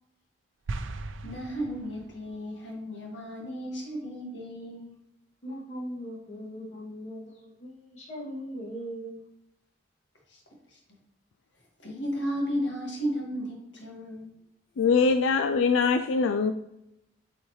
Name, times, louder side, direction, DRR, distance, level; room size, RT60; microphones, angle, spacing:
sound 1, 0.7-2.3, right 3 dB, 85° right, 0.5 m, -38 dB
voice 1, 1.2-5.0 10.3-10.4 10.7-10.8 11.8-14.3, equal, 60° left, -1 dB, 1.8 m, -34 dB
voice 2, 5.4-9.2, equal, 35° left, -6 dB, 2.4 m, -39 dB
voice 3, 14.8-16.5, left 5 dB, 85° left, 8 dB, 0.4 m, -23 dB
8.3 x 4.4 x 3.1 m, 0.84 s
head